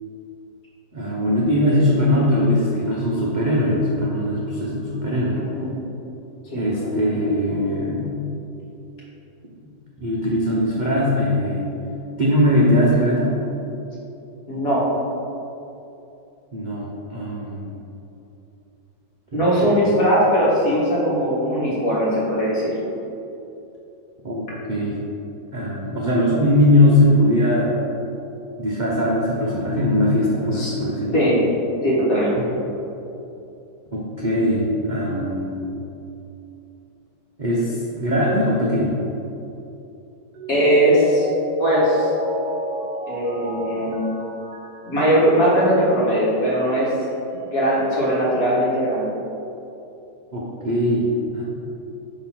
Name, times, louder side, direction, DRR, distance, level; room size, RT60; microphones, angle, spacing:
voice 1, 0.9-5.4 6.5-8.1 10.0-11.7 12.2-13.3 16.5-17.7 19.3-19.8 24.2-25.0 25.5-27.7 28.6-31.2 32.3-32.4 33.9-35.7 37.4-38.9 50.3-51.1 51.3-51.4, left 1 dB, 45° right, -6 dB, 0.6 m, -20 dB
voice 2, 5.3-5.8 6.5-6.8 14.5-15.0 19.3-22.7 30.5-30.7 31.1-31.4 31.8-32.3 40.5-41.3 41.6-42.1 43.1-44.0 44.8-46.9 47.3-49.1, equal, 50° left, -7 dB, 2.1 m, -20 dB
Mallet percussion, 40.3-45.9 46.2-46.3, equal, 70° right, 1.5 m, -31 dB
5.9 x 3.9 x 5.9 m, 2.8 s
omnidirectional pair, 1.9 m